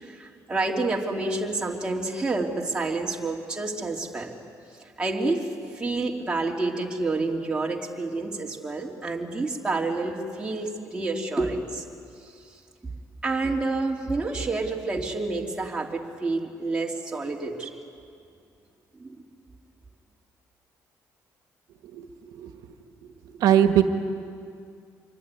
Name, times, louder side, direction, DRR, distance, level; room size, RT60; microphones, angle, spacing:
voice 1, 0.0-4.3 5.0-5.5 5.7-11.8 13.2-17.7 19.0-19.2, right 3 dB, 15° right, -1 dB, 2.9 m, -28 dB
voice 2, 23.4-23.8, right 10 dB, 85° right, 7 dB, 1.7 m, -19 dB
26.0 x 23.5 x 9.7 m, 2.4 s
cardioid pair, 155°, 6 cm